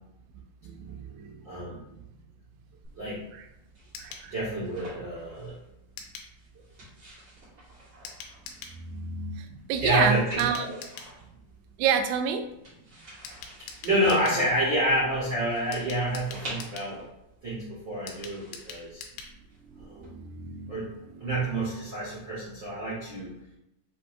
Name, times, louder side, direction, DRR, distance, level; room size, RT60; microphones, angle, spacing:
voice 1, 0.6-1.4 4.0-4.3 8.9-10.6 11.8-12.5 20.0-20.7, right 7 dB, 90° right, 6 dB, 2.6 m, -29 dB
voice 2, 1.4-1.8 2.9-3.2 4.3-5.5 9.8-10.8 13.8-17.0 17.4-19.0 19.8-20.1 20.7-20.8 21.2-23.3, equal, 70° right, -10 dB, 1.0 m, -28 dB
sound 1, 2.8-20.1, right 1 dB, 45° right, 1.5 m, -49 dB
sound 2, 3.9-4.3 6.0-6.3 8.1-8.8 10.4-11.1 13.3-14.4 15.7-16.9 18.1-19.4 19.7-19.8 20.0-20.1, left 6 dB, 85° left, 2.8 m, -43 dB
6.7 x 2.9 x 2.6 m, 0.86 s
omnidirectional pair, 4.6 m